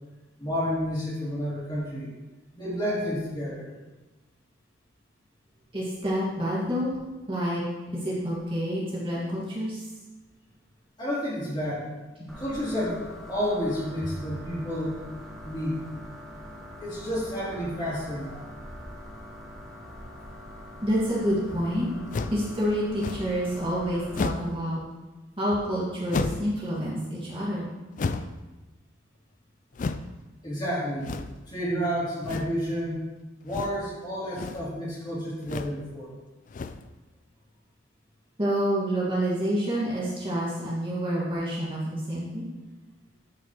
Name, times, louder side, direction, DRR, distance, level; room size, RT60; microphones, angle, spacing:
voice 1, 0.4-2.1 2.5-3.7 11.0-11.9 12.3-13.0 13.3-15.0 15.4-15.8 16.8-18.4 30.4-31.1 31.5-33.0 33.4-36.1, equal, 25° left, -8 dB, 3.0 m, -30 dB
voice 2, 5.7-6.9 7.3-7.6 8.0-9.8 12.2-12.4 20.8-21.9 22.3-24.8 25.4-27.7 38.4-42.5, equal, 25° right, -7 dB, 1.9 m, -28 dB
sound 1, 12.3-24.2, equal, ahead, 1.2 m, -44 dB
sound 2, 22.1-22.5 23.0-23.4 24.1-24.6 26.1-26.5 28.0-28.4 29.7-30.1 31.0-31.5 32.2-32.6 33.5-33.9 34.2-34.7 35.4-35.8 36.5-36.9, left 4 dB, 40° left, 0.3 m, -32 dB
12.5 x 5.8 x 3.1 m, 1.2 s
head